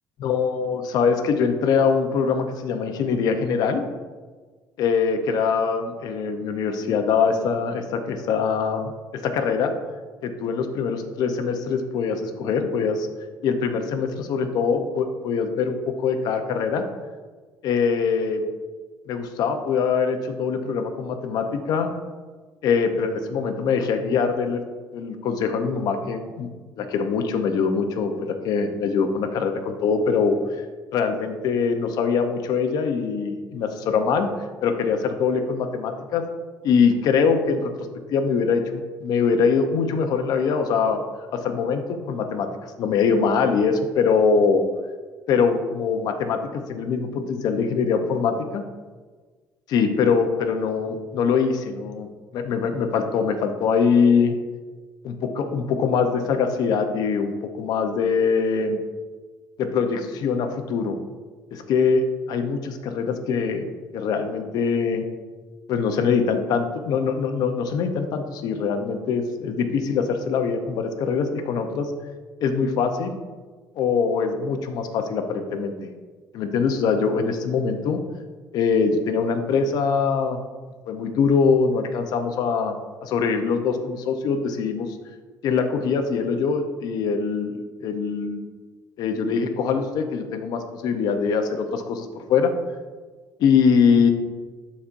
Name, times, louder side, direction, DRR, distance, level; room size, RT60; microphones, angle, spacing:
voice 1, 0.2-3.8 4.8-9.7 10.2-13.1 13.4-16.9 17.6-18.5 19.1-21.9 22.6-24.6 24.9-26.5 26.8-30.4 30.9-34.3 34.6-36.2 36.6-37.7 38.1-41.0 41.3-42.5 42.8-44.6 45.3-48.6 49.7-52.1 52.3-54.3 55.0-58.8 59.6-61.0 61.5-63.6 63.9-65.1 65.7-71.9 72.4-73.2 73.7-75.9 76.3-78.0 78.5-80.4 80.9-82.7 83.0-84.9 85.4-88.4 89.0-92.5 93.4-94.1, left 5 dB, 65° left, 6 dB, 0.7 m, -23 dB
11.5 x 4.2 x 2.6 m, 1.4 s
cardioid pair, 150°, 7 cm